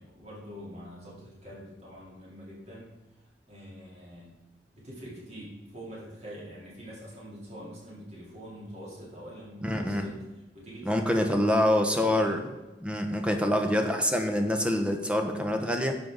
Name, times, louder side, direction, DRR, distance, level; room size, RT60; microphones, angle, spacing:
voice 1, 0.0-2.9 3.5-4.3 4.7-10.2 10.5-12.4 13.6-13.9, equal, 40° right, -5 dB, 3.7 m, -44 dB
voice 2, 9.6-10.1 10.8-12.4 12.8-16.0, left 1 dB, 5° right, 4 dB, 0.9 m, -26 dB
10.5 x 7.4 x 4.0 m, 1.0 s
head